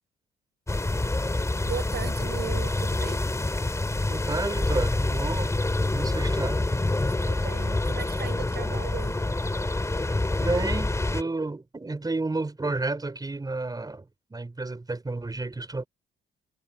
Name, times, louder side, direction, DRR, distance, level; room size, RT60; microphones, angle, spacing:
sound 1, 0.7-11.2, left 2 dB, 15° left, 3.5 m, -27 dB
voice 1, 1.6-3.2 7.0-9.2, right 8 dB, 55° right, 6.7 m, -37 dB
voice 2, 4.1-5.5 5.9-6.6 10.4-14.1 14.3-15.9, right 3 dB, 20° right, 5.6 m, -31 dB
cardioid pair, 90°, 20 cm